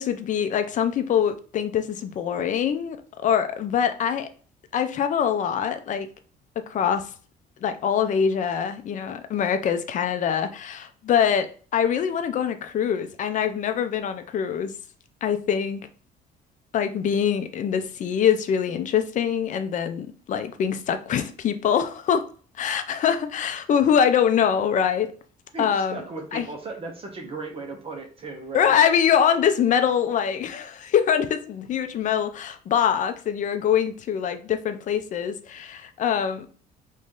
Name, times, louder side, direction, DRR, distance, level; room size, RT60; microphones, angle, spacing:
voice 1, 0.0-3.0 3.2-4.3 4.7-6.1 6.7-7.1 7.6-11.5 11.7-14.7 15.2-15.8 16.7-22.3 22.6-25.1 25.6-26.0 26.3-26.5 28.5-36.5, left 8 dB, 50° left, 0.5 m, -24 dB
voice 2, 25.5-28.8, right 3 dB, 35° right, 0.8 m, -36 dB
3.1 x 2.7 x 3.6 m
cardioid pair, 110°, 17 cm